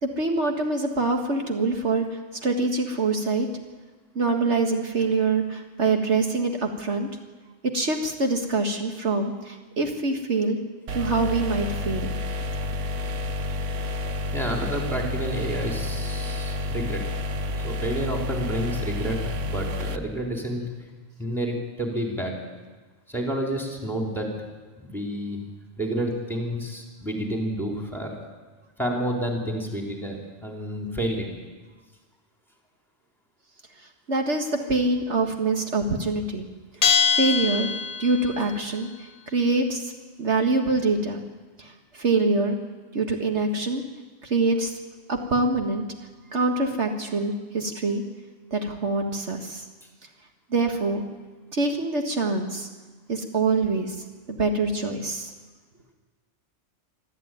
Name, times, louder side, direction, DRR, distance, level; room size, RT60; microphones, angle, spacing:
voice 1, 0.0-2.1 2.4-3.5 4.2-7.1 7.7-10.6 10.9-12.1 34.1-36.5 37.1-37.7 38.0-39.9 40.2-41.2 41.6-42.6 42.9-43.8 44.2-44.7 45.1-45.8 46.3-48.0 48.5-49.7 50.5-51.0 51.5-52.7 53.1-54.0 54.3-55.3, right 3 dB, 70° right, 3 dB, 2.1 m, -25 dB
sound 1, 10.9-20.0, left 2 dB, 85° right, 1.4 m, -30 dB
voice 2, 14.3-17.0 17.6-20.6 21.2-22.3 23.1-24.3 24.8-25.4 25.8-28.1 28.8-31.2, right 1 dB, ahead, 0 dB, 4.0 m, -29 dB
Bell, 36.8-38.4, left 6 dB, 40° left, 0.7 m, -23 dB
25.0 x 13.0 x 9.3 m, 1.3 s
omnidirectional pair, 1.2 m